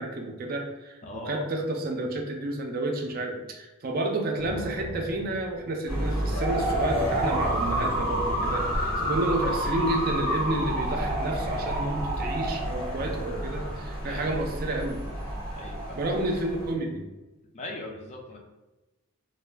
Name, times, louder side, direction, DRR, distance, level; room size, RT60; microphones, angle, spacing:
voice 1, 0.0-15.1 15.9-17.1, right 1 dB, 45° right, 2 dB, 0.4 m, -30 dB
voice 2, 1.0-1.4 14.1-14.4 15.6-16.0 17.5-18.4, left 1 dB, 30° left, 1 dB, 0.4 m, -39 dB
sound 1, 4.4-6.3 6.5-9.5, equal, 10° right, 0.6 m, -38 dB
sound 2, 5.9-16.7, right 1 dB, 75° left, 0.9 m, -29 dB
2.3 x 2.1 x 3.2 m, 1.1 s
head